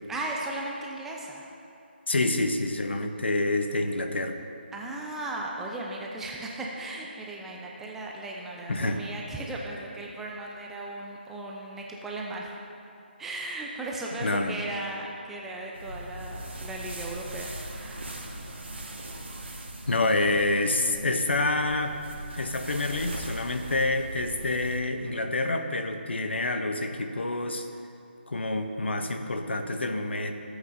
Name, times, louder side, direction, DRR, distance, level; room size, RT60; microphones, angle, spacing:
voice 1, 0.1-1.5 2.1-2.2 4.7-12.5 13.2-18.4, right 2 dB, 5° right, -2 dB, 0.6 m, -36 dB
voice 2, 2.1-4.4 8.7-9.0 14.2-14.6 19.9-21.9 22.3-27.7 28.3-30.3, left 2 dB, 75° left, 6 dB, 0.9 m, -27 dB
sound 1, 15.7-24.8, right 1 dB, 80° right, 1.4 m, -40 dB
15.5 x 8.1 x 2.6 m, 2.7 s
figure-of-eight pair, 155°, 6 cm